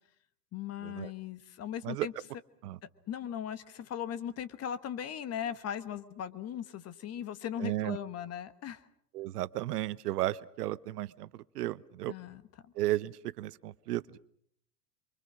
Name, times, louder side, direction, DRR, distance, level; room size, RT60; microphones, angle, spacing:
voice 1, 0.5-2.1 3.1-8.8 12.1-12.7, left 9 dB, 30° left, 14 dB, 1.4 m, -38 dB
voice 2, 7.6-8.0 9.1-12.1 12.7-14.2, right 15 dB, 70° right, 18 dB, 1.0 m, -34 dB
28.0 x 23.5 x 6.3 m, 0.67 s
hypercardioid pair, 100°, 48 cm